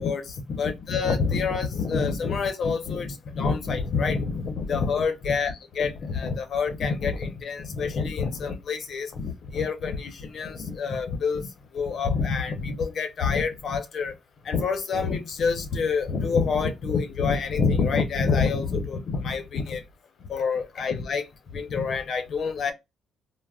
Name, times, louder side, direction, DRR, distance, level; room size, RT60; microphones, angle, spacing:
voice 1, 0.0-11.5 11.7-14.1 14.4-19.8 20.3-21.2 21.5-22.7, left 5 dB, 60° left, 0.6 m, -27 dB
3.4 x 2.0 x 2.3 m
cardioid pair, 90°, 0 cm